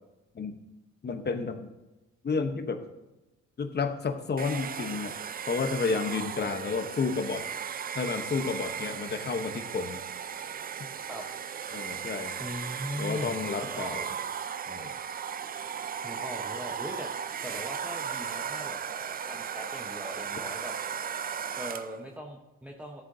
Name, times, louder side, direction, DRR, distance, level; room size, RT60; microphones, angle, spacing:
voice 1, 1.0-1.7 2.2-2.8 3.6-5.1 5.4-7.4 7.9-10.0 11.7-12.5 13.0-14.0 14.7-15.0, left 4 dB, 35° left, 7 dB, 1.0 m, -31 dB
Domestic sounds home sounds, 4.4-22.0, right 7 dB, 30° right, 0.4 m, -36 dB
voice 2, 12.4-14.0 16.0-17.1 17.4-18.8 19.3-20.7 21.6-23.0, equal, 5° right, 0 dB, 1.0 m, -39 dB
13.0 x 7.5 x 2.7 m, 1.0 s
cardioid pair, 90°, 30 cm